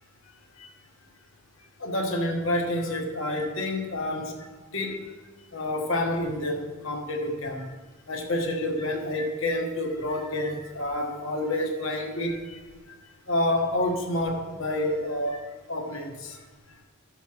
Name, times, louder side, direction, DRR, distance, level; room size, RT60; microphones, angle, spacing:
voice 1, 1.8-5.1 5.5-7.7 8.1-12.6 13.3-16.4, left 1 dB, 60° left, 1 dB, 1.3 m, -29 dB
15.5 x 6.7 x 3.0 m, 1.3 s
head